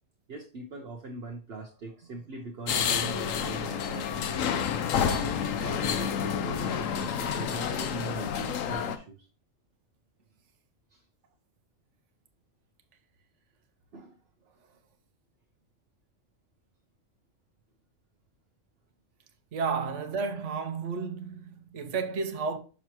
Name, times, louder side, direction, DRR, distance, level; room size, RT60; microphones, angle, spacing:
voice 1, 0.3-4.3 4.9-9.3 10.9-11.0 13.9-14.2, right 3 dB, 55° right, 1.0 m, -41 dB
sound 1, 2.7-9.0, left 7 dB, 85° left, 1.1 m, -29 dB
voice 2, 19.5-22.6, right 5 dB, 70° right, 1.1 m, -32 dB
6.5 x 6.0 x 2.9 m
omnidirectional pair, 1.3 m